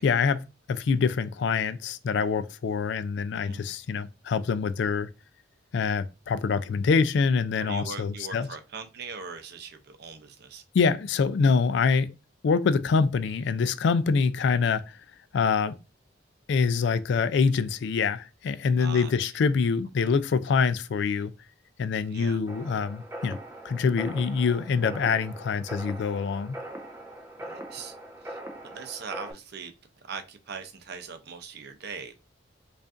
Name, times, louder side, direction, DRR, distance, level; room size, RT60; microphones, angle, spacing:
voice 1, 0.0-5.1 5.7-8.5 10.7-12.1 12.4-14.9 15.3-15.8 16.5-21.3 21.8-23.4 23.6-26.6, left 5 dB, 65° left, 0.3 m, -25 dB
voice 2, 7.6-10.6 18.8-19.1 22.0-22.4 27.4-27.9 28.2-29.7 30.1-32.1, right 5 dB, 60° right, 0.5 m, -40 dB
sound 1, 22.5-29.3, right 1 dB, 15° right, 0.5 m, -41 dB
4.9 x 2.5 x 2.4 m
head